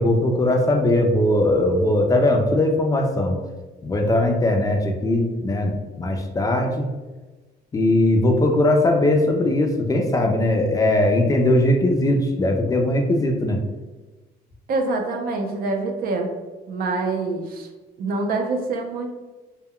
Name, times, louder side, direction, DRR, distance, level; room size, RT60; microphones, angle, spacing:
voice 1, 0.0-3.4 3.8-6.9 7.7-13.6, left 1 dB, 20° left, 2 dB, 0.3 m, -20 dB
voice 2, 14.7-16.3 16.7-17.7 18.0-19.1, right 3 dB, 60° right, 3 dB, 0.5 m, -25 dB
2.1 x 2.1 x 3.6 m, 1.2 s
cardioid pair, 110°, 17 cm